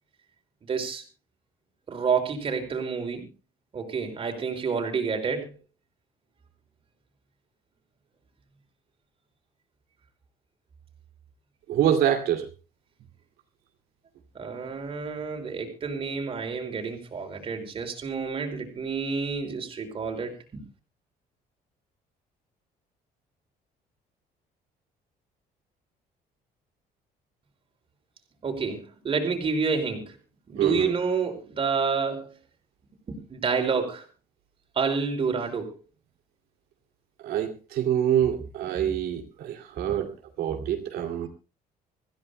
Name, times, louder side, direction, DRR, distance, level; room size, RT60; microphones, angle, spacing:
voice 1, 0.7-1.0 1.9-3.3 3.7-5.6 14.3-20.6 28.4-30.2 30.5-32.3 33.1-34.1 34.8-35.7 39.8-40.0, right 5 dB, 35° right, 5.3 m, -29 dB
voice 2, 11.7-12.5 30.6-30.9 37.2-40.1 40.4-41.3, right 10 dB, 85° right, 2.5 m, -25 dB
26.0 x 16.0 x 2.2 m
cardioid pair, 150°, 16 cm